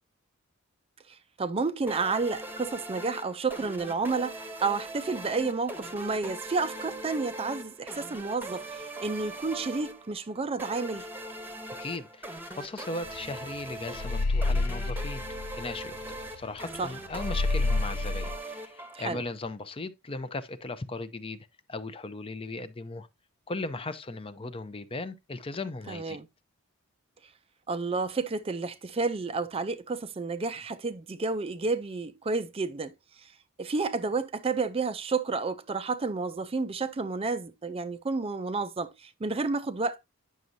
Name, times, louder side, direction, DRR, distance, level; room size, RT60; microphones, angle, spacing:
voice 1, 1.1-4.3 4.6-11.1 16.8-16.9 18.9-19.2 25.9-26.3 27.7-33.3 33.6-40.0, right 4 dB, 25° right, 0.4 m, -31 dB
sound 1, 1.9-19.3, right 1 dB, 10° right, 0.9 m, -41 dB
voice 2, 11.8-16.0 16.4-21.4 21.7-23.1 23.5-26.2, left 2 dB, 25° left, 0.5 m, -37 dB
sound 2, 13.1-13.3 13.5-16.4 16.7-16.8 17.1-18.4, left 3 dB, 90° left, 0.4 m, -29 dB
9.3 x 6.2 x 2.6 m
head